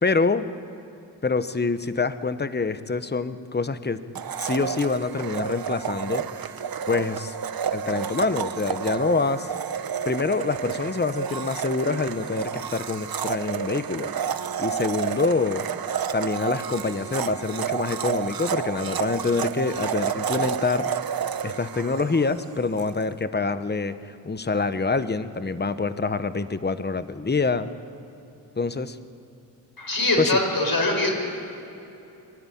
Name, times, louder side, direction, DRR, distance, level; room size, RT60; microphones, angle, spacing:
voice 1, 0.0-0.4 1.2-4.0 4.4-6.5 6.9-7.3 7.7-9.5 10.0-14.1 14.6-15.6 16.1-20.9 21.4-27.7 28.6-29.0 30.2-30.3, left 4 dB, 25° left, 12 dB, 1.1 m, -26 dB
Domestic sounds home sounds, 4.1-22.9, right 7 dB, 60° right, 0.8 m, -30 dB
voice 2, 29.8-31.2, left 2 dB, 55° left, 1 dB, 6.1 m, -23 dB
24.5 x 13.0 x 10.0 m, 2.9 s
cardioid pair, 60°, 41 cm